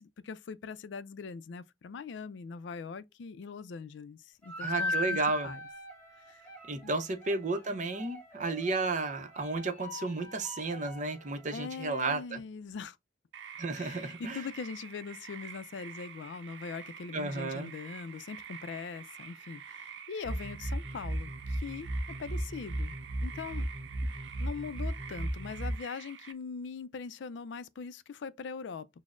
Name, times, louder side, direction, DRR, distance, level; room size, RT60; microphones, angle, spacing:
voice 1, 0.0-5.2 5.4-5.6 6.3-6.4 6.8-7.0 11.5-13.0 13.7-21.9 22.2-23.7 24.4-28.9, left 5 dB, 75° left, 0.4 m, -41 dB
sound 1, 4.4-11.5, left 2 dB, 10° left, 1.8 m, -40 dB
voice 2, 4.6-5.5 6.7-12.4 13.6-14.4 17.1-17.7, right 3 dB, 40° right, 0.6 m, -33 dB
sound 2, 13.3-26.3, right 7 dB, 85° right, 0.6 m, -48 dB
sound 3, 20.2-25.8, right 1 dB, 30° left, 0.8 m, -35 dB
6.0 x 2.0 x 2.4 m
head